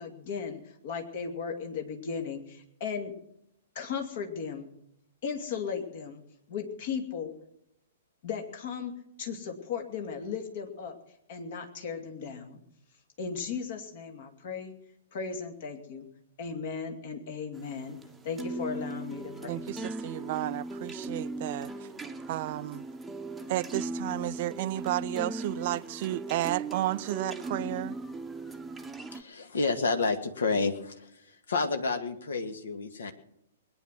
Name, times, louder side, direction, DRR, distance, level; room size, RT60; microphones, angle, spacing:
voice 1, 0.0-3.1 3.7-4.7 5.2-6.2 6.5-7.3 8.2-11.0 11.3-12.6 13.2-14.7 15.1-16.1 16.4-18.0 18.2-19.7, left 6 dB, 50° left, 2.6 m, -36 dB
sound 1, 17.6-29.2, right 2 dB, 5° right, 1.0 m, -38 dB
voice 2, 19.5-21.9 22.3-22.8 23.5-28.0, right 15 dB, 45° right, 0.5 m, -32 dB
voice 3, 29.1-31.1 31.5-33.1, left 4 dB, 65° left, 1.9 m, -29 dB
21.0 x 9.7 x 6.1 m
figure-of-eight pair, 110°, 0 cm